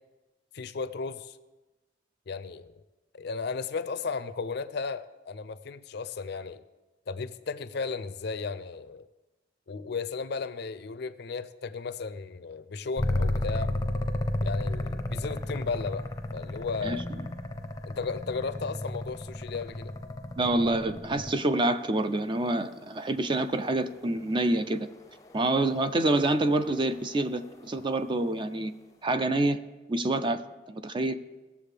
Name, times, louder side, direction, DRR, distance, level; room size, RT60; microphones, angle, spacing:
voice 1, 0.5-1.4 2.3-2.7 3.1-6.6 7.1-9.1 9.7-13.7 14.4-16.1 16.3-17.0 17.8-19.9, left 4 dB, 60° left, 13 dB, 0.5 m, -35 dB
sound 1, 13.0-21.5 23.8-28.3, left 1 dB, 20° left, 0.6 m, -34 dB
voice 2, 20.4-24.9 25.3-28.7 29.0-29.6 29.9-31.2, right 2 dB, 25° right, 10 dB, 0.4 m, -27 dB
18.5 x 7.2 x 3.4 m, 1.1 s
head